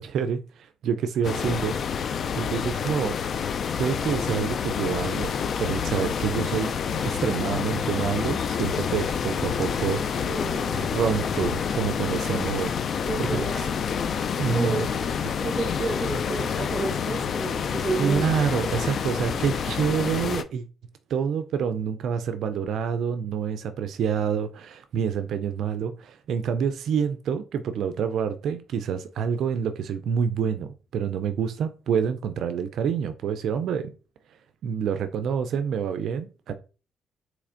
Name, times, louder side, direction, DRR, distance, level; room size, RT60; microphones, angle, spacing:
voice 1, 0.0-1.8 2.4-3.2 3.8-5.3 5.6-6.7 7.0-10.2 10.7-12.8 13.2-13.3 14.4-14.9 15.2-15.3 18.0-20.6 21.1-33.9 34.6-36.5, right 7 dB, 70° right, 0.3 m, -27 dB
sound 1, 1.2-20.4, left 7 dB, 55° left, 0.3 m, -28 dB
voice 2, 10.3-10.8 13.1-13.7 14.5-15.1 15.4-18.5, right 3 dB, 20° right, 0.7 m, -31 dB
4.1 x 3.0 x 2.5 m
cardioid pair, 90°, 0 cm